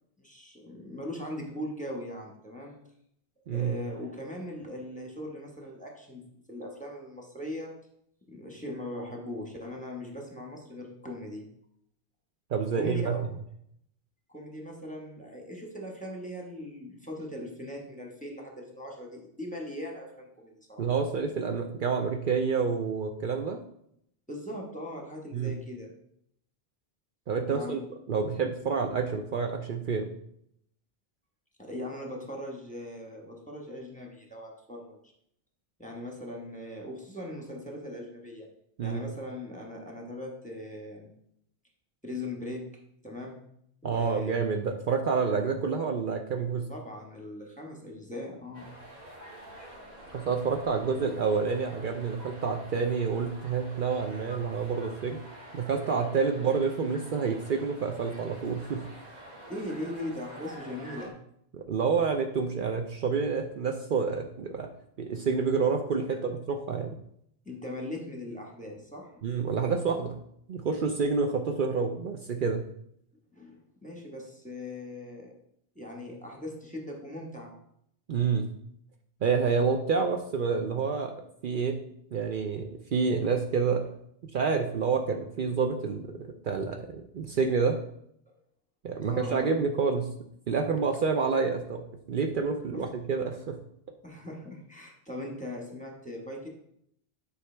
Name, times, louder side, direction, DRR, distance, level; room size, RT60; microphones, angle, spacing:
voice 1, 0.2-2.8 3.5-7.7 8.3-11.5 12.7-13.2 14.3-20.9 24.3-25.9 27.5-27.8 31.6-35.0 35.8-38.5 38.8-41.1 42.0-42.6 43.0-43.4 43.8-44.3 46.7-48.7 59.5-61.1 67.4-69.3 73.3-75.3 75.7-77.5 88.3-88.4 89.0-89.5 92.7-92.8 94.0-96.5, left 1 dB, 10° left, 0 dB, 1.3 m, -40 dB
voice 2, 12.5-13.2 20.8-23.6 25.3-25.5 27.3-27.8 28.1-30.1 38.8-39.0 43.8-46.7 50.1-55.2 55.5-58.8 61.5-64.7 65.0-67.0 69.2-70.1 70.5-72.6 78.1-78.5 79.2-81.1 81.4-81.8 82.1-83.8 84.3-86.1 86.4-87.8 88.8-90.1 90.5-91.8 92.1-93.6, right 5 dB, 60° right, 4 dB, 0.8 m, -28 dB
sound 1, 48.5-61.1, right 1 dB, 40° right, 1.8 m, -47 dB
9.6 x 4.9 x 3.3 m, 0.71 s
omnidirectional pair, 1.0 m